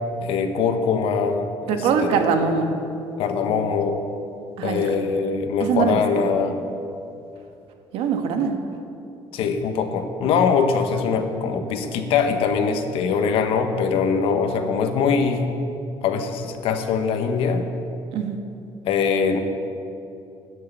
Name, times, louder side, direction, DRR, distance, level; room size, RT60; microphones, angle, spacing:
voice 1, 0.2-2.2 3.2-4.0 4.6-6.5 9.3-15.4 16.0-17.7 18.8-19.4, left 5 dB, 75° left, 7 dB, 1.3 m, -22 dB
voice 2, 1.7-2.7 4.6-4.9 5.6-6.3 7.9-8.6 18.1-18.4, right 6 dB, 85° right, 6 dB, 1.4 m, -22 dB
13.5 x 6.7 x 9.9 m, 2.7 s
cardioid pair, 160°, 10 cm